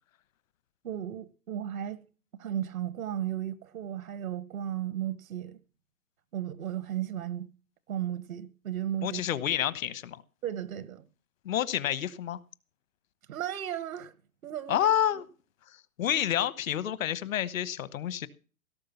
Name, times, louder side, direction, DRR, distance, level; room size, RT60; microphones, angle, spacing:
voice 1, 0.8-2.0 2.4-5.6 6.3-7.5 7.9-9.2 10.4-11.0 13.3-14.2 14.4-14.9, right 11 dB, 75° right, 1.2 m, -35 dB
voice 2, 9.0-10.2 11.4-12.4 14.7-15.2 15.7-18.3, left 10 dB, 70° left, 1.2 m, -29 dB
17.5 x 6.4 x 7.0 m
hypercardioid pair, 130°, 42 cm